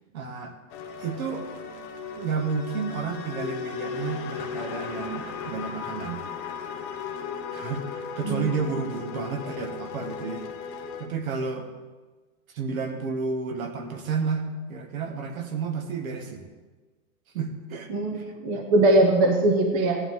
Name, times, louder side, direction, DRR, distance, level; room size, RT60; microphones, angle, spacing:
voice 1, 0.1-0.5 1.0-1.5 2.2-6.2 7.5-10.4 11.0-11.7 12.5-16.5 17.3-18.3 18.5-18.6, right 5 dB, 70° right, 6 dB, 1.7 m, -31 dB
sound 1, 0.7-11.0, left 6 dB, 20° left, 0.5 m, -36 dB
voice 2, 17.9-20.0, right 2 dB, 20° right, 3 dB, 0.6 m, -21 dB
15.5 x 11.0 x 3.7 m, 1.3 s
supercardioid pair, 170°, 44 cm